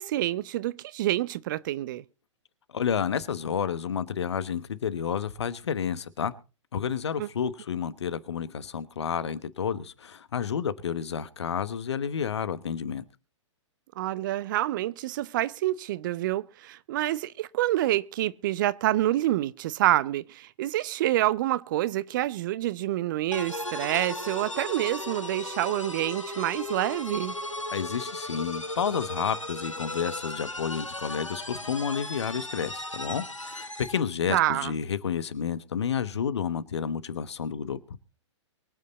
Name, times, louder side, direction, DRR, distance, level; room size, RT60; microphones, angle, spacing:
voice 1, 0.0-2.0 7.2-7.3 14.0-27.3 34.3-34.7, right 14 dB, 40° right, 0.7 m, -27 dB
voice 2, 2.7-6.3 6.7-13.0 27.7-37.8, left 7 dB, 60° left, 1.2 m, -30 dB
sound 1, 23.3-34.1, left 1 dB, 90° left, 1.4 m, -36 dB
23.5 x 8.5 x 4.1 m
figure-of-eight pair, 110°, 16 cm